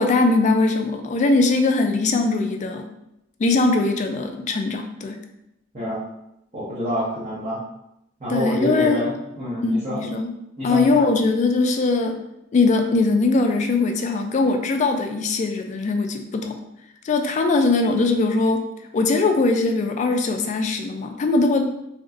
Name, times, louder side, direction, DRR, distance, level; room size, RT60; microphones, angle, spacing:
voice 1, 0.0-2.9 3.4-5.2 8.3-9.0 9.6-10.3 10.6-12.2 12.5-16.5 17.0-18.6 18.9-21.7, left 3 dB, 40° left, 4 dB, 0.3 m, -21 dB
voice 2, 6.5-7.6 8.2-9.1 9.4-10.0 10.6-11.1, left 1 dB, 35° right, -10 dB, 0.8 m, -26 dB
2.9 x 2.5 x 2.4 m, 0.84 s
head